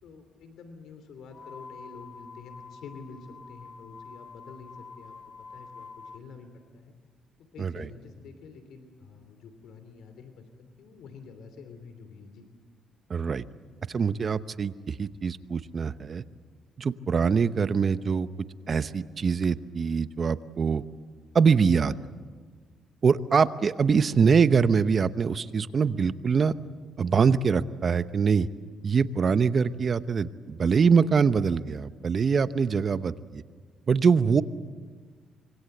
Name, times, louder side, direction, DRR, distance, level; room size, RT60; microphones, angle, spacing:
voice 1, 0.0-6.9 7.5-12.4, left 5 dB, 75° left, 8 dB, 3.0 m, -48 dB
sound 1, 1.3-6.2, left 5 dB, 40° left, 2.0 m, -47 dB
voice 2, 13.1-13.4 13.9-16.2 16.8-18.3 18.7-20.8 21.3-22.0 23.0-26.5 27.0-28.5 28.8-33.4 33.9-34.4, right 5 dB, 45° right, 13 dB, 0.9 m, -24 dB
25.5 x 23.5 x 8.0 m, 1.5 s
cardioid pair, 90°, 0 cm